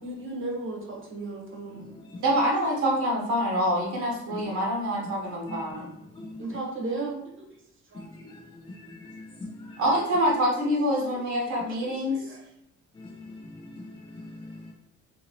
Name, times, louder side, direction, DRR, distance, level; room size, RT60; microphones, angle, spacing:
voice 1, 0.0-1.9 4.3-4.5 6.4-7.5 7.9-8.0 11.5-11.6 12.1-12.4, right 2 dB, 45° right, 0 dB, 0.9 m, -35 dB
voice 2, 1.7-2.2 5.5-5.8 6.2-6.6 7.9-9.8 10.2-10.3 13.0-14.7, left 2 dB, 20° left, -1 dB, 0.4 m, -43 dB
voice 3, 2.2-5.9 9.8-12.2, equal, 75° right, -2 dB, 1.0 m, -26 dB
2.7 x 2.7 x 2.8 m, 0.78 s
cardioid pair, 90°, 30 cm